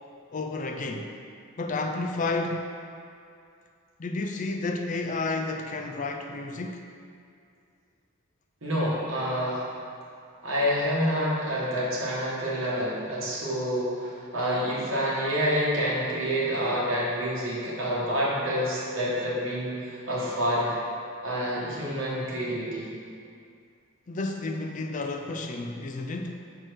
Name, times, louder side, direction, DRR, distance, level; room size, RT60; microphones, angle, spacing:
voice 1, 0.3-1.1 1.6-2.7 4.0-6.8 24.1-26.5, left 3 dB, 35° left, 4 dB, 0.4 m, -31 dB
voice 2, 8.6-9.7 10.4-20.8 21.2-22.9, equal, 65° right, -6 dB, 1.7 m, -28 dB
6.3 x 4.5 x 4.6 m, 2.4 s
head